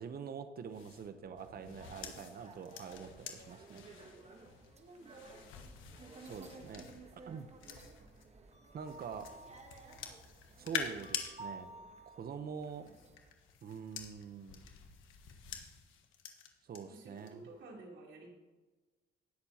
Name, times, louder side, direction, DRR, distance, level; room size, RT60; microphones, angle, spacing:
voice 1, 0.0-3.8 6.2-6.8 7.1-7.5 8.7-9.3 10.6-11.7 12.1-12.9 13.6-14.6 16.6-17.5, right 6 dB, 50° right, 9 dB, 0.9 m, -45 dB
sound 1, 0.7-8.3 8.8-11.3 12.5-16.8 17.2-17.5, left 8 dB, 90° left, 1.4 m, -47 dB
sound 2, 1.8-13.3, right 3 dB, 35° right, 1.3 m, -54 dB
voice 2, 16.9-18.3, right 2 dB, 70° right, -2 dB, 3.2 m, -52 dB
19.0 x 6.8 x 2.9 m, 1.2 s
cardioid pair, 90°, 20 cm